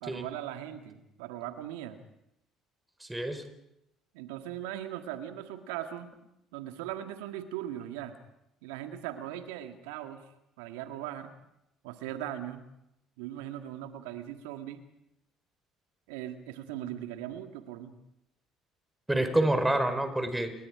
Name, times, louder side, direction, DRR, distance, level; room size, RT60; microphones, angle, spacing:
voice 1, 0.0-2.0 4.1-6.2 6.5-8.2 8.6-11.3 11.8-12.7 13.2-14.8 16.1-18.0, right 12 dB, 70° right, 7 dB, 1.9 m, -39 dB
voice 2, 3.0-3.4 19.1-20.5, right 1 dB, 10° right, 8 dB, 4.6 m, -27 dB
30.0 x 22.5 x 5.0 m, 0.83 s
hypercardioid pair, 55°, 0 cm